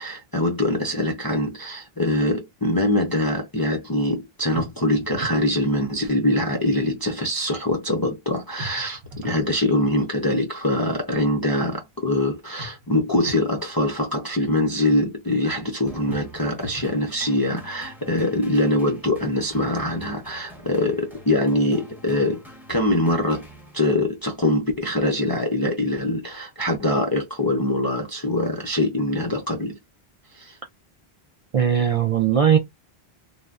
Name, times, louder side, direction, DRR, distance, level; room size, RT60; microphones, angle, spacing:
voice 1, 0.0-22.4 22.7-23.5 23.7-29.8 30.3-30.6, left 1 dB, 40° left, 0.3 m, -23 dB
sound 1, 4.5-5.4 8.6-9.5 12.6-13.5 16.1-17.0, equal, 80° right, 0.9 m, -38 dB
sound 2, 15.9-24.2, right 1 dB, ahead, 0.7 m, -45 dB
voice 2, 31.5-32.6, right 8 dB, 50° right, 0.4 m, -18 dB
3.2 x 2.0 x 2.4 m
omnidirectional pair, 1.0 m